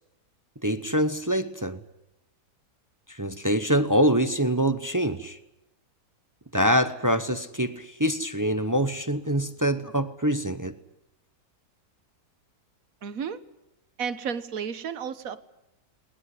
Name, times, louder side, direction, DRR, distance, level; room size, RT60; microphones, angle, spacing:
voice 1, 0.6-1.8 3.1-5.4 6.5-10.7, equal, 20° right, 0.6 m, -25 dB
voice 2, 13.0-13.4 14.0-15.4, right 7 dB, 60° right, 1.4 m, -32 dB
20.5 x 20.0 x 9.8 m
omnidirectional pair, 1.8 m